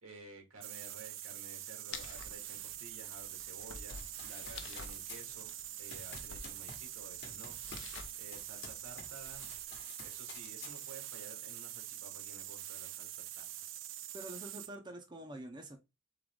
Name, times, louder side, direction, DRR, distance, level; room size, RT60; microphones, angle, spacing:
voice 1, 0.0-9.5 10.0-13.4, right 2 dB, 85° right, 1.7 m, -54 dB
sound 1, 0.6-14.8, right 13 dB, 65° right, 0.5 m, -45 dB
sound 2, 1.9-9.6, left 5 dB, 65° left, 0.8 m, -52 dB
Run, 3.9-9.2 9.4-11.2, left 5 dB, 50° left, 1.2 m, -52 dB
voice 2, 14.1-15.8, right 1 dB, 20° right, 0.6 m, -46 dB
3.9 x 3.8 x 3.5 m
head